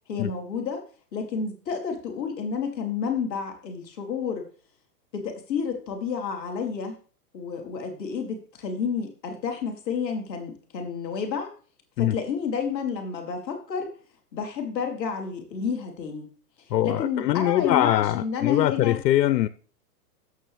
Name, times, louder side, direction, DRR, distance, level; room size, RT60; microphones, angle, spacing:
voice 1, 0.1-0.8 1.1-4.4 5.1-7.0 7.3-11.5 12.0-13.9 14.3-16.3 16.8-19.0, left 6 dB, 5° left, 0.3 m, -30 dB
voice 2, 16.7-19.5, left 13 dB, 80° left, 0.6 m, -22 dB
14.0 x 6.3 x 3.1 m
hypercardioid pair, 150°, 49 cm